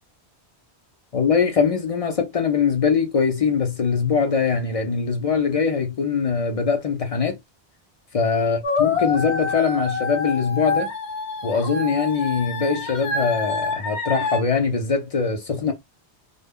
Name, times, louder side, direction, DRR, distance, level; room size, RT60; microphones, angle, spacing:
voice 1, 1.1-7.4 8.1-10.9 11.4-15.7, left 5 dB, 50° left, 0.4 m, -22 dB
sound 1, 8.6-14.4, left 4 dB, 75° left, 1.0 m, -26 dB
2.1 x 2.0 x 3.4 m
omnidirectional pair, 1.1 m